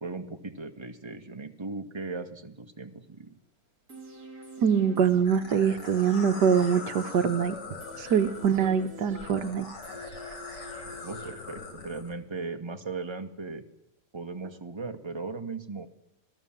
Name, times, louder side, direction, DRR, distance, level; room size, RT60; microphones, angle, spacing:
voice 1, 0.0-3.4 11.0-13.6 14.1-15.9, right 3 dB, 15° right, 5 dB, 1.8 m, -37 dB
sound 1, 3.9-11.9 12.2-12.3, left 1 dB, 55° right, 4.8 m, -47 dB
voice 2, 4.6-7.6 8.0-9.7, right 7 dB, 70° right, 10 dB, 1.6 m, -24 dB
sound 2, 5.3-12.1, left 4 dB, 75° left, 4.0 m, -42 dB
27.5 x 18.0 x 7.5 m, 0.82 s
omnidirectional pair, 1.9 m